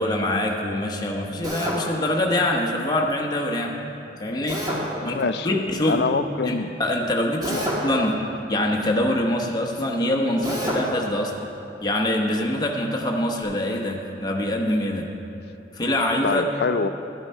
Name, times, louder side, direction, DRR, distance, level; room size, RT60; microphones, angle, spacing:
voice 1, 0.0-3.8 4.2-4.6 5.0-6.0 6.4-8.2 8.5-11.3 11.8-15.1 15.7-16.4, left 1 dB, 25° left, 0 dB, 1.0 m, -24 dB
Drill, 1.4-1.8 4.5-4.8 7.4-7.9 10.4-10.8, equal, 20° right, 1.6 m, -27 dB
voice 2, 5.0-5.6 5.9-6.7 7.5-7.7 16.2-16.9, left 4 dB, 60° left, 12 dB, 0.4 m, -25 dB
12.0 x 8.0 x 5.5 m, 3.0 s
head